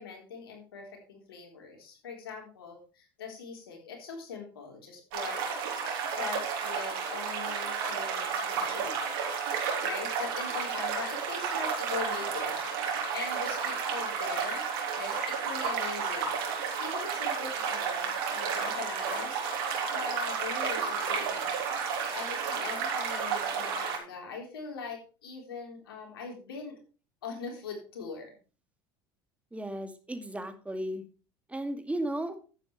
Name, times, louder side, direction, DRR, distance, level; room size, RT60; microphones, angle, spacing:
voice 1, 0.0-5.4 5.8-9.0 9.8-14.7 14.9-21.6 22.1-26.8 27.2-28.4, left 5 dB, 90° left, 2 dB, 3.9 m, -42 dB
sound 1, 5.1-24.0, right 6 dB, 75° right, 3.5 m, -32 dB
voice 2, 29.5-31.0 31.5-32.3, right 1 dB, 10° right, 7 dB, 2.2 m, -34 dB
11.5 x 9.1 x 3.3 m, 0.35 s
hypercardioid pair, 80°, 12 cm